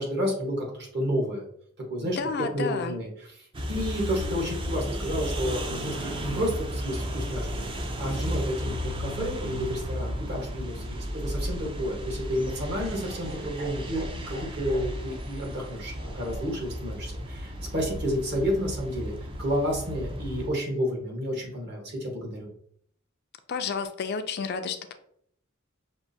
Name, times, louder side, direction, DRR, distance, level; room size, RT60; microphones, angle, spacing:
voice 1, 0.0-1.4 1.9-2.2 2.5-3.1 3.7-19.1 19.4-22.5, equal, 55° right, -1 dB, 1.3 m, -30 dB
voice 2, 2.0-3.0 23.5-25.0, left 5 dB, 55° left, 8 dB, 0.4 m, -31 dB
sound 1, 3.5-20.5, equal, 25° right, 0.4 m, -34 dB
Laughter, 12.4-18.6, equal, 75° right, 1.0 m, -44 dB
5.9 x 2.5 x 2.6 m, 0.65 s
head